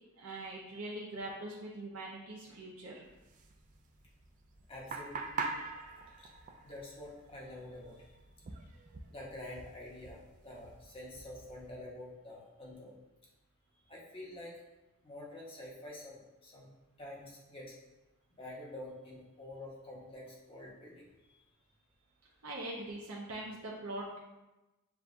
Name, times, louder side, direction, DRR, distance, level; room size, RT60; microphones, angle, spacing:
voice 1, 0.2-3.1 22.4-24.2, right 1 dB, 70° right, -4 dB, 0.6 m, -42 dB
sound 1, 3.0-11.8, right 4 dB, 35° right, 0.3 m, -45 dB
voice 2, 4.7-5.2 6.2-6.3 6.6-8.0 9.1-13.0 13.9-14.6 15.0-16.7 17.0-17.7 18.4-21.4, left 1 dB, 25° left, -4 dB, 0.9 m, -47 dB
6.8 x 2.3 x 2.5 m, 1.0 s
head